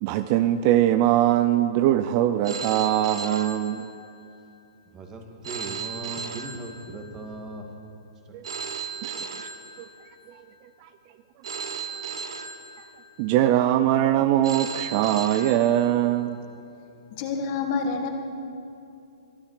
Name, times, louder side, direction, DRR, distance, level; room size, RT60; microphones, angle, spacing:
voice 1, 0.0-3.9 8.3-8.4 9.0-9.5 9.8-9.9 10.3-10.4 10.8-10.9 11.9-12.0 13.2-16.4, right 12 dB, 40° right, 11 dB, 0.6 m, -22 dB
Telephone, 2.4-4.3 5.4-7.3 8.4-10.3 11.4-13.3 14.4-16.3, right 6 dB, 75° right, 1.3 m, -36 dB
voice 2, 4.9-8.0, right 2 dB, 20° right, 3 dB, 2.1 m, -38 dB
voice 3, 17.1-18.1, left 5 dB, 40° left, 4 dB, 1.9 m, -27 dB
23.0 x 12.5 x 4.9 m, 2.7 s
hypercardioid pair, 140°, 3 cm